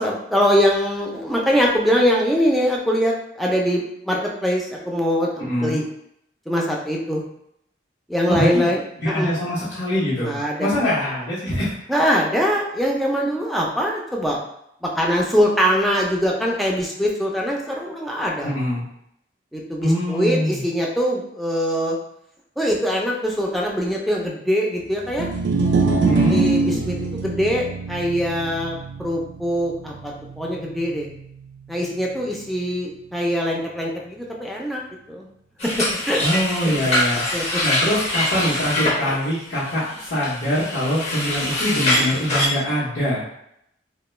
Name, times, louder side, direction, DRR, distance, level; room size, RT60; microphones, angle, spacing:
voice 1, 0.0-5.8 6.5-7.2 8.1-8.8 9.1-9.3 10.2-10.9 11.9-14.4 14.8-18.5 19.5-22.0 22.6-25.3 26.3-31.1 31.7-34.8 35.1-35.3 35.6-36.2 37.3-37.6, equal, ahead, -3 dB, 0.4 m, -22 dB
voice 2, 5.4-5.8 8.2-8.7 9.0-12.0 18.4-18.8 19.8-20.6 26.0-26.4 36.2-37.2 37.6-43.2, equal, 70° left, -11 dB, 0.9 m, -23 dB
sound 1, 25.1-31.4, right 3 dB, 90° right, 0.4 m, -24 dB
sound 2, 35.6-42.5, left 1 dB, 40° left, 0.7 m, -24 dB
2.2 x 2.2 x 3.1 m, 0.76 s
head